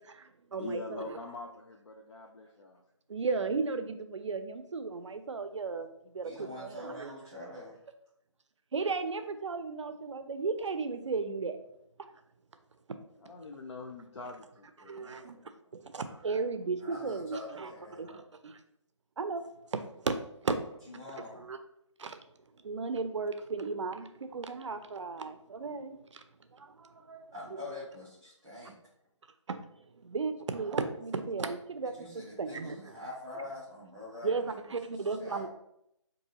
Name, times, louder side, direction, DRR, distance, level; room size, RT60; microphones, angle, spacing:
voice 1, 0.1-1.2 3.1-7.1 8.7-11.6 12.0-12.1 12.9-13.0 14.8-15.4 15.7-18.6 19.2-19.4 19.7-20.2 20.4-20.6 20.9-21.6 22.0-22.2 22.6-26.2 26.5-27.3 29.5-32.1 32.4-32.9 34.2-35.5, right 4 dB, 70° right, 9 dB, 0.4 m, -35 dB
voice 2, 0.6-2.8 13.1-15.6, left 3 dB, 65° left, 0 dB, 0.5 m, -44 dB
voice 3, 6.2-7.8 16.8-18.2 20.9-21.4 27.3-28.7 32.0-34.7 35.2-35.5, left 2 dB, 5° right, -16 dB, 0.4 m, -45 dB
3.8 x 2.7 x 2.7 m, 0.77 s
hypercardioid pair, 175°, 16 cm